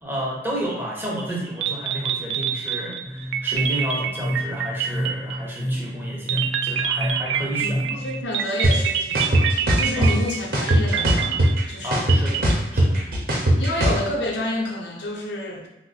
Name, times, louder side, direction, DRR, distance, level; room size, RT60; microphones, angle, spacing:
voice 1, 0.0-8.0 10.0-10.2 11.8-12.4 12.7-13.0, right 1 dB, 10° right, -3 dB, 0.6 m, -31 dB
sound 1, 1.3-1.4 1.6-5.6 6.3-12.5, right 8 dB, 90° right, 0.3 m, -26 dB
sound 2, 3.0-8.2, equal, 35° left, 0.5 m, -30 dB
voice 2, 7.6-12.0 13.4-15.7, left 1 dB, 90° left, 0 dB, 0.6 m, -29 dB
sound 3, 8.6-8.7 9.1-10.1 10.5-11.6 11.9-14.0, right 1 dB, 55° right, 0.7 m, -18 dB
2.9 x 2.0 x 4.0 m, 1.0 s
head